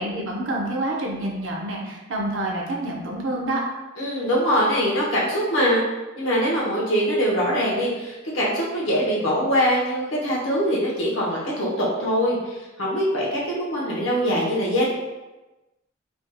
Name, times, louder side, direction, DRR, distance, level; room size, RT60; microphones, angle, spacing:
voice 1, 0.0-3.6, right 1 dB, 70° right, -2 dB, 0.7 m, -27 dB
voice 2, 4.0-5.8 6.2-14.9, equal, 70° left, -4 dB, 0.9 m, -23 dB
3.4 x 2.8 x 2.2 m, 1.1 s
head